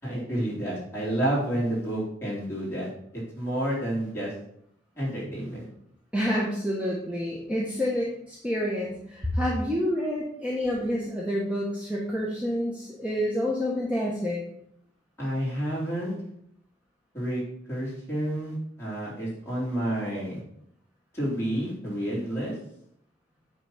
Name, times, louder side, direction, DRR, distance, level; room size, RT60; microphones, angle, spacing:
voice 1, 0.0-2.9 3.3-4.3 5.0-5.6 15.2-16.1 17.1-17.4 17.7-20.4 21.1-22.5, right 1 dB, 15° left, -8 dB, 3.6 m, -29 dB
voice 2, 6.1-14.4, equal, 5° right, -4 dB, 1.1 m, -28 dB
9.0 x 4.0 x 5.6 m, 0.71 s
head